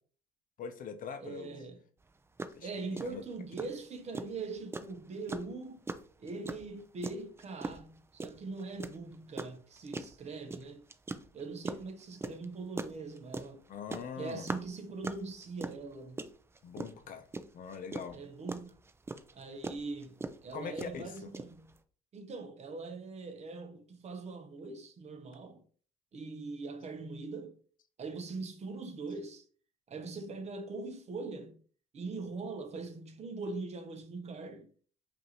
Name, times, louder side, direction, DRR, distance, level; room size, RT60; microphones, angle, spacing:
voice 1, 0.6-1.6 2.6-3.2 13.7-14.5 16.6-17.3 17.5-18.2 20.5-21.3, left 6 dB, 55° left, 0.6 m, -42 dB
voice 2, 1.2-1.8 2.6-5.8 6.2-10.8 11.3-13.6 14.2-16.2 18.1-18.8 19.3-21.7 22.1-25.6 26.1-27.6 28.0-29.4 29.9-31.6 31.9-34.7, right 3 dB, 40° right, 0.8 m, -42 dB
sound 1, 2.0-2.1 2.4-2.6 3.0-21.8, right 3 dB, 15° right, 0.4 m, -40 dB
5.3 x 2.6 x 2.9 m
cardioid pair, 110°, 17 cm